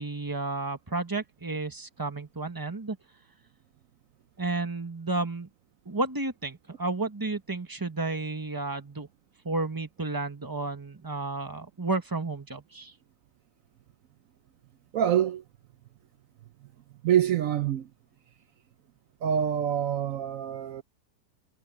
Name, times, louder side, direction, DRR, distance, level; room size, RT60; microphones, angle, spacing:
voice 1, 0.0-3.0 4.4-5.5 5.8-9.1 9.4-12.9, right 3 dB, 15° right, 1.1 m, -32 dB
voice 2, 14.9-15.4 17.0-17.9 19.2-20.8, right 10 dB, 65° right, 0.8 m, -26 dB
omnidirectional pair, 1.8 m